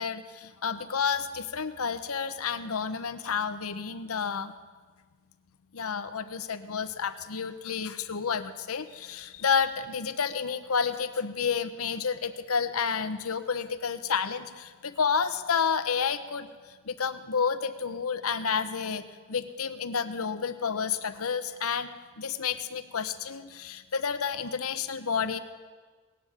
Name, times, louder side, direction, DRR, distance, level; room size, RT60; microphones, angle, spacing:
voice 1, 0.0-4.5 5.7-16.5 16.8-21.9 22.2-25.4, left 6 dB, 75° left, 11 dB, 0.9 m, -30 dB
19.0 x 9.5 x 7.4 m, 1.5 s
head